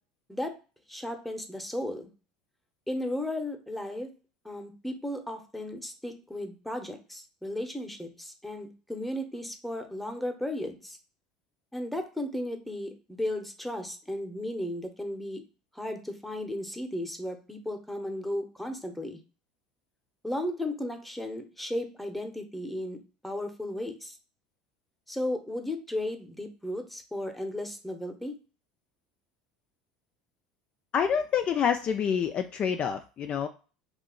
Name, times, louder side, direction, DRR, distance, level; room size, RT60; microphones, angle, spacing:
voice 1, 0.9-2.1 2.9-4.1 4.4-11.0 11.7-15.4 15.7-19.2 20.2-23.0 23.2-24.2 25.1-28.3, left 1 dB, 5° left, 5 dB, 0.8 m, -35 dB
voice 2, 30.9-33.5, left 7 dB, 40° left, 7 dB, 0.3 m, -27 dB
2.7 x 2.4 x 3.7 m, 0.34 s
hypercardioid pair, 75°, 3 cm